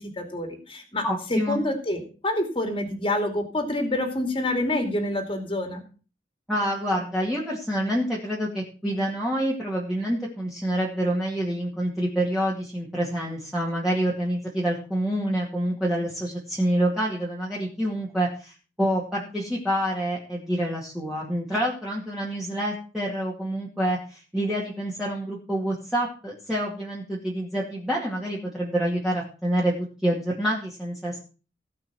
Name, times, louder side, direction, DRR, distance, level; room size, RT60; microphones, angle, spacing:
voice 1, 0.0-1.0 1.3-5.8, left 1 dB, 30° left, 4 dB, 2.4 m, -27 dB
voice 2, 1.0-1.6 6.5-29.7 30.0-31.2, equal, ahead, -6 dB, 2.4 m, -27 dB
16.5 x 5.7 x 6.1 m, 0.36 s
head